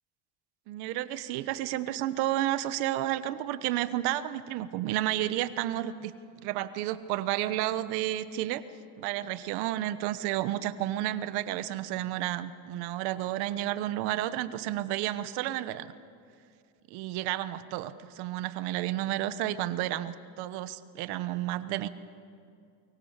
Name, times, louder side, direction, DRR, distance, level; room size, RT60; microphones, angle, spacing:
voice 1, 0.7-6.1 6.4-8.6 9.0-15.9 16.9-21.9, right 14 dB, 75° right, 13 dB, 1.2 m, -31 dB
24.0 x 23.5 x 7.4 m, 2.4 s
cardioid pair, 150°, 39 cm